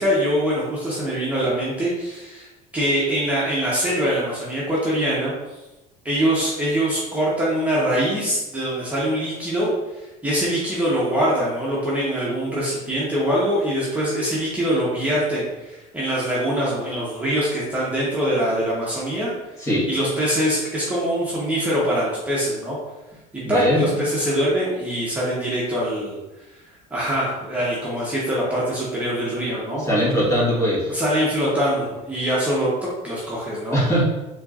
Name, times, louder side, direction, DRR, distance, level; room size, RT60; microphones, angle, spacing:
voice 1, 0.0-2.5 2.7-5.3 6.0-19.3 19.9-22.8 23.5-26.2 26.9-29.9 30.9-32.7 33.0-33.8, equal, 10° right, -8 dB, 1.1 m, -23 dB
voice 2, 23.4-23.9 29.8-31.0 33.7-34.0, equal, 20° left, -6 dB, 1.4 m, -20 dB
4.3 x 3.1 x 2.5 m, 1.0 s
supercardioid pair, 105°, 16 cm